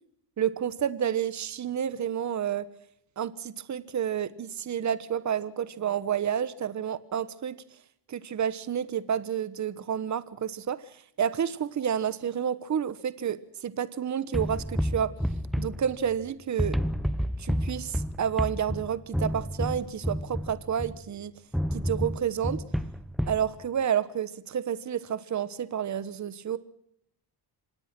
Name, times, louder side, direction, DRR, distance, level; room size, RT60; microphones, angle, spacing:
voice 1, 0.4-2.7 3.2-7.6 8.1-15.1 15.6-16.8 17.4-21.3 21.7-22.6 23.3-26.6, right 8 dB, 40° right, 16 dB, 1.2 m, -30 dB
sound 1, 14.3-16.3 16.6-21.1 21.5-23.5, equal, ahead, 0.9 m, -30 dB
26.0 x 19.5 x 6.1 m, 0.69 s
cardioid pair, 115°, 42 cm